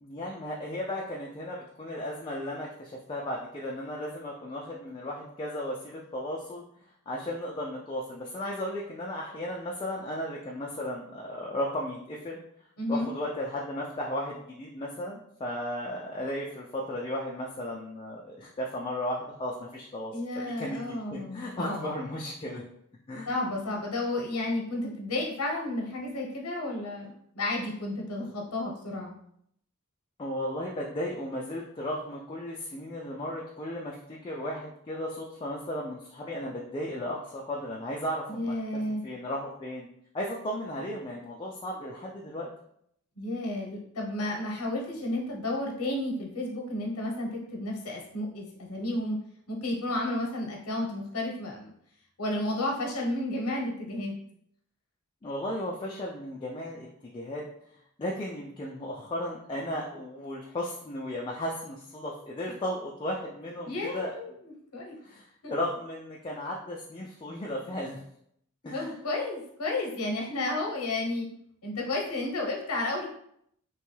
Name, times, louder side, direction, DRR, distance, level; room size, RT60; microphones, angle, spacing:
voice 1, 0.0-6.6 7.1-12.4 12.9-22.6 23.1-23.3 30.2-38.5 39.0-39.9 40.1-42.5 55.2-56.9 57.1-57.4 58.0-64.2 65.0-68.0 68.6-69.0, left 1 dB, 25° left, -3 dB, 0.3 m, -35 dB
voice 2, 12.8-13.1 20.1-22.0 23.3-29.1 38.3-39.0 43.2-49.2 49.5-51.7 52.2-54.1 63.7-65.0 65.4-65.5 68.7-71.3 71.6-73.1, left 2 dB, 90° left, 0 dB, 0.8 m, -32 dB
3.0 x 2.2 x 3.1 m, 0.70 s
head